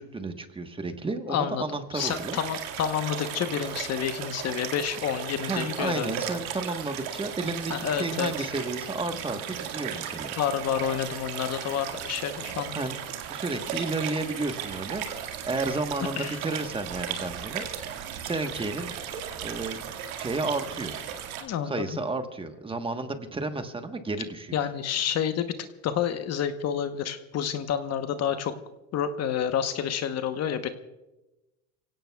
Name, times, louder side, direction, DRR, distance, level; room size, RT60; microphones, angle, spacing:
voice 1, 0.0-2.4 5.4-10.3 12.7-13.0 13.3-17.6 18.2-18.9 19.4-21.0 21.6-24.6, right 3 dB, 15° right, 7 dB, 1.2 m, -32 dB
voice 2, 1.3-1.6 1.9-6.1 7.7-8.5 10.4-12.8 16.2-16.4 21.4-21.8 24.5-25.5 25.8-28.5 28.9-30.7, left 9 dB, 40° left, 9 dB, 1.0 m, -29 dB
sound 1, 1.9-21.4, right 9 dB, 85° right, 2.0 m, -36 dB
28.0 x 17.0 x 2.3 m, 1.0 s
supercardioid pair, 115°, 41 cm